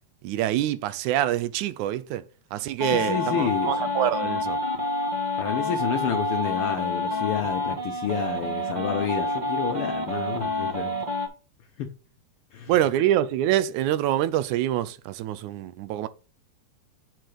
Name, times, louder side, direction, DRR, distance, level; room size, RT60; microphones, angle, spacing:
voice 1, 0.2-2.2 2.5-4.6 12.7-16.1, right 12 dB, 85° right, 2.1 m, -25 dB
voice 2, 2.8-3.8 5.4-11.0 11.8-11.9 12.5-12.7, left 8 dB, 75° left, 1.3 m, -30 dB
sound 1, 2.8-11.3, left 2 dB, 25° right, 0.9 m, -28 dB
7.7 x 4.7 x 4.8 m
omnidirectional pair, 3.4 m